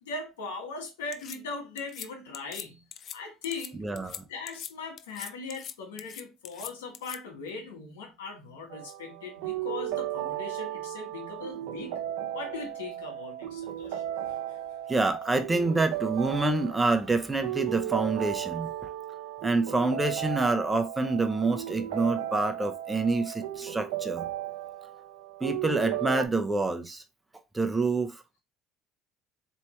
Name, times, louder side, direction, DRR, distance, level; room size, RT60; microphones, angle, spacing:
voice 1, 0.0-2.8 3.1-3.8 4.3-12.0 12.3-14.6, left 4 dB, 90° left, 1.4 m, -40 dB
sound 1, 1.1-1.4 1.8-2.1 2.3-2.7 2.9-3.2 3.4-3.7 4.0-4.2 4.5-4.7 5.0-5.7 6.0-7.2, left 9 dB, 50° left, 0.4 m, -41 dB
voice 2, 3.8-4.2 14.9-18.7 19.4-24.2 25.4-27.0 27.5-28.2, right 3 dB, 15° right, 0.8 m, -27 dB
sound 2, 8.7-26.3, right 13 dB, 80° right, 0.8 m, -35 dB
4.4 x 3.3 x 3.1 m
hypercardioid pair, 75°, 0 cm